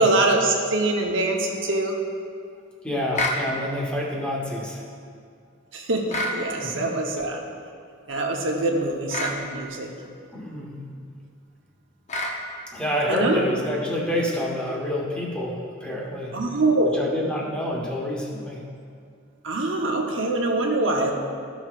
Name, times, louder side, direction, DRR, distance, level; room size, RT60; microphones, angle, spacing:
voice 1, 0.0-1.9 5.7-7.4 8.1-9.9 13.1-13.4 16.3-17.0 19.4-21.1, right 2 dB, 75° right, 0 dB, 1.0 m, -23 dB
voice 2, 2.8-4.9 6.6-6.7 10.3-10.8 12.7-16.3 16.9-18.6, left 1 dB, 5° left, -4 dB, 1.3 m, -28 dB
sound 1, 3.1-3.4 6.1-6.4 9.1-9.4 12.1-12.4, left 1 dB, 35° left, 0.8 m, -26 dB
14.5 x 6.1 x 2.5 m, 2.2 s
head